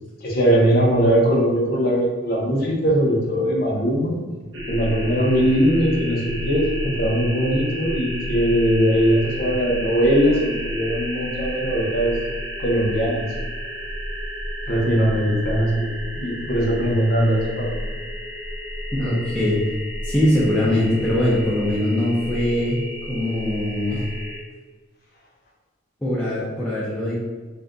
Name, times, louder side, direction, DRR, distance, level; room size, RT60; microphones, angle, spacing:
voice 1, 0.2-4.2 4.7-12.2 12.6-13.3 14.7-17.8, equal, 50° left, -4 dB, 0.7 m, -20 dB
sound 1, 4.5-24.4, equal, 65° right, 0.6 m, -31 dB
voice 2, 18.9-19.6 20.0-22.8 23.1-24.0 26.0-27.1, left 1 dB, 5° left, -8 dB, 0.4 m, -21 dB
3.6 x 2.5 x 2.2 m, 1.4 s
head